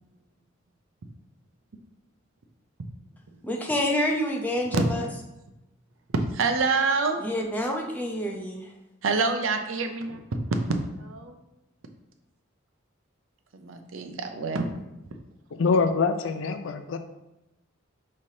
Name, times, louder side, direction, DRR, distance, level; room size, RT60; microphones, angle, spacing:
voice 1, 3.4-5.1 7.2-8.7, left 1 dB, 10° left, 0 dB, 0.6 m, -28 dB
voice 2, 6.1-7.2 9.0-10.4 11.0-11.4 13.5-14.7, right 4 dB, 85° right, 6 dB, 0.5 m, -26 dB
voice 3, 15.5-17.0, left 4 dB, 75° left, 8 dB, 0.4 m, -24 dB
5.4 x 3.2 x 2.7 m, 0.94 s
head